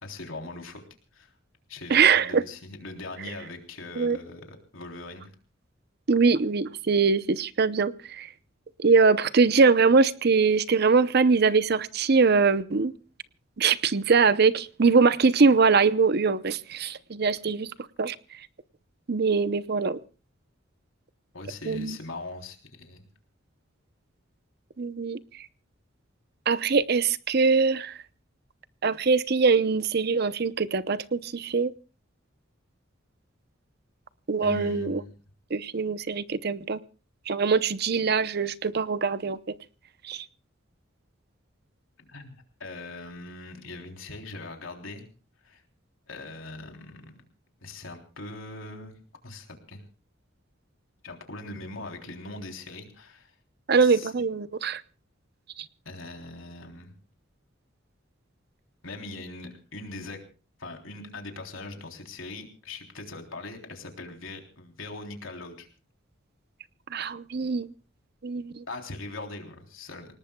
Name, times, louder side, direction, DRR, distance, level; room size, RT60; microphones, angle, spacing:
voice 1, 0.0-0.8 1.1-1.3 1.7-5.3 21.3-23.1 34.4-35.1 42.0-45.0 45.4-45.6 46.1-47.2 47.6-49.0 49.2-49.8 51.0-53.3 53.8-54.1 55.9-56.9 58.8-60.2 60.6-65.7 68.7-70.1, left 2 dB, 85° left, 3 dB, 3.5 m, -41 dB
voice 2, 1.9-2.4 4.0-4.2 6.1-8.3 8.8-12.9 13.6-17.7 18.0-18.1 19.1-20.0 21.7-22.0 24.8-25.2 26.5-28.0 28.8-31.7 34.3-35.0 35.5-36.8 37.3-39.6 40.1-40.2 53.7-54.8 66.9-67.7 68.2-68.6, right 4 dB, 55° right, 15 dB, 0.7 m, -22 dB
28.5 x 18.5 x 2.3 m, 0.36 s
head